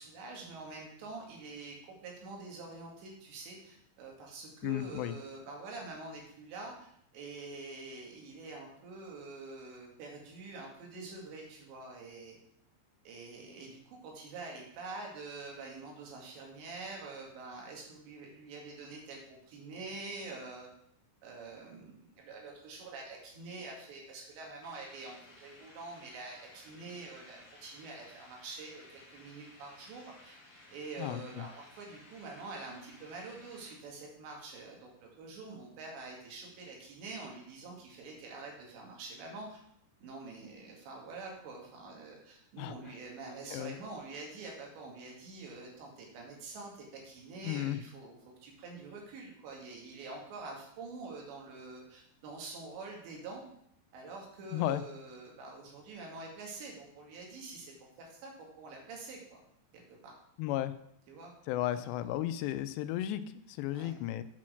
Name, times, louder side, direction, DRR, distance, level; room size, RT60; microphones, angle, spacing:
voice 1, 0.0-12.4 13.1-20.7 21.2-30.4 30.7-39.6 40.0-48.2 48.4-53.4 53.9-59.4 59.7-60.1 61.1-61.3 61.7-61.8 63.7-63.9, right 3 dB, 80° right, 0 dB, 4.2 m, -46 dB
voice 2, 4.6-5.1 31.0-31.5 42.6-42.9 43.5-43.8 47.4-47.8 54.5-54.8 60.4-60.7 61.5-64.2, left 13 dB, 85° left, 12 dB, 2.6 m, -34 dB
sound 1, 24.6-33.8, left 2 dB, 35° left, 3.2 m, -57 dB
8.4 x 5.9 x 6.3 m, 0.71 s
omnidirectional pair, 5.0 m